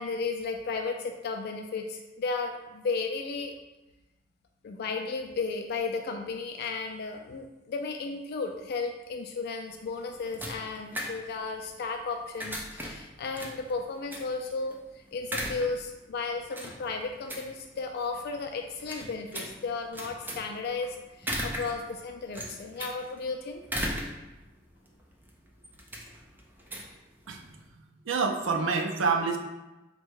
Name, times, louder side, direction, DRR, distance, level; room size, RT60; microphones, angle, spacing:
voice 1, 0.0-3.5 4.6-14.8 15.1-23.6, left 4 dB, 55° left, 4 dB, 0.3 m, -34 dB
sound 1, 9.7-27.7, equal, 10° right, 0.5 m, -39 dB
voice 2, 27.3-27.6 28.1-29.4, right 4 dB, 85° right, 4 dB, 0.5 m, -27 dB
4.1 x 2.2 x 4.6 m, 1.1 s
head